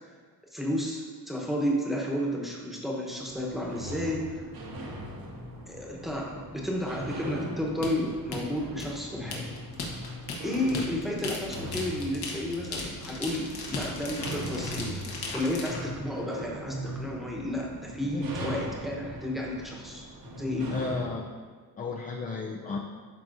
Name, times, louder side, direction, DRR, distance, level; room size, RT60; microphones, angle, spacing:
voice 1, 0.5-4.5 5.7-9.6 10.4-15.0 15.3-20.1 20.4-20.8, left 1 dB, ahead, -3 dB, 1.0 m, -32 dB
sound 1, 3.3-21.1, right 1 dB, 70° right, 1.3 m, -40 dB
sound 2, 7.8-15.8, left 3 dB, 80° left, 1.3 m, -37 dB
voice 2, 20.7-21.3 21.8-22.8, left 4 dB, 25° left, 1 dB, 0.3 m, -33 dB
12.0 x 4.7 x 2.6 m, 1.5 s
cardioid pair, 170°, 37 cm